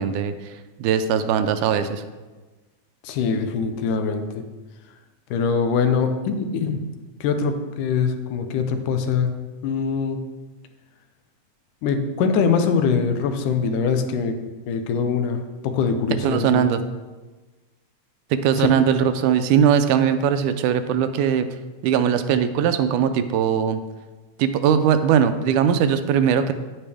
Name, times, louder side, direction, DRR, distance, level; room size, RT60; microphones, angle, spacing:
voice 1, 0.0-2.0 16.2-16.8 18.3-21.5 21.8-23.8 24.4-26.5, right 8 dB, 85° right, 10 dB, 2.1 m, -20 dB
voice 2, 3.0-4.4 5.3-6.9 7.2-9.3 9.6-10.2 11.8-16.7 18.6-18.7, left 5 dB, 85° left, 7 dB, 2.3 m, -23 dB
9.3 x 8.9 x 3.4 m, 1.2 s
omnidirectional pair, 3.6 m